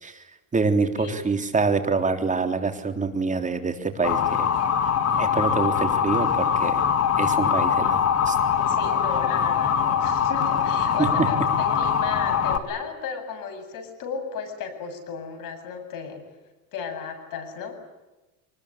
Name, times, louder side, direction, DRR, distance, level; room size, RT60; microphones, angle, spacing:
voice 1, 0.5-4.5 5.2-6.8 7.2-8.4 11.0-11.1, right 4 dB, 20° right, 7 dB, 3.5 m, -26 dB
Motor vehicle (road) / Siren, 4.0-12.6, left 7 dB, 40° left, 2.4 m, -22 dB
voice 2, 8.6-16.2 16.7-17.8, left 6 dB, 55° left, 6 dB, 7.8 m, -35 dB
25.0 x 20.5 x 9.9 m, 1.1 s
supercardioid pair, 110°, 38 cm